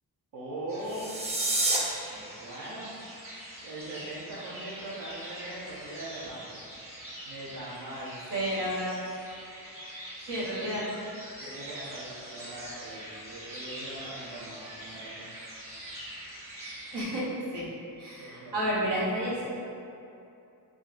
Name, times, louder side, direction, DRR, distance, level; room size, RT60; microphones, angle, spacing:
voice 1, 0.3-1.1 2.1-2.9 3.6-6.6 7.3-8.2 11.4-15.3 18.2-18.7, right 1 dB, 60° right, -8 dB, 0.6 m, -41 dB
sound 1, 0.7-17.0, right 1 dB, 35° right, 1.0 m, -44 dB
sound 2, 0.8-1.8, right 2 dB, 15° right, 0.4 m, -28 dB
voice 2, 8.3-8.9 10.3-10.8 16.9-17.2 17.5-17.7 18.0-19.5, equal, 80° right, -7 dB, 1.0 m, -30 dB
3.8 x 2.8 x 2.4 m, 2.7 s
wide cardioid pair, 110°, 40 cm